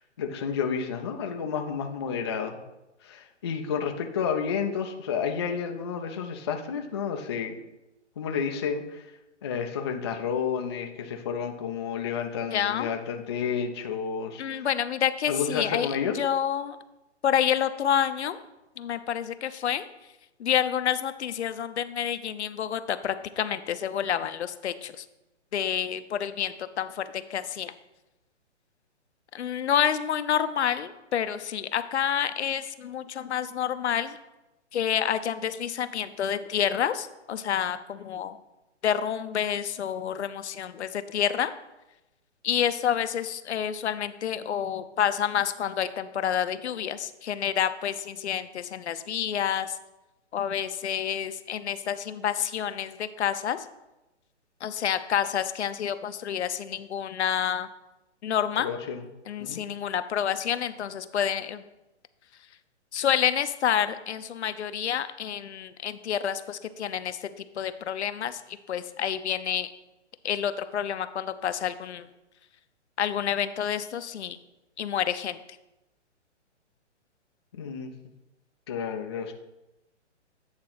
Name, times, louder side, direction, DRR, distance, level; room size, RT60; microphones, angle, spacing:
voice 1, 0.0-2.6 3.0-7.6 8.2-9.1 9.4-14.7 15.3-16.2 58.6-59.0 59.4-59.6 77.5-77.9 78.7-79.3, left 6 dB, 25° left, 4 dB, 0.4 m, -31 dB
voice 2, 12.5-12.9 14.4-16.8 17.2-18.4 18.8-19.8 20.4-25.1 25.5-27.7 29.3-34.2 34.7-38.4 38.8-41.5 42.4-49.8 50.3-53.7 54.6-57.7 58.2-58.7 59.3-61.7 62.9-69.7 70.2-72.1 73.0-74.4 74.8-75.4, left 9 dB, 65° left, 11 dB, 0.6 m, -28 dB
8.8 x 3.7 x 5.8 m, 0.98 s
hypercardioid pair, 135°, 36 cm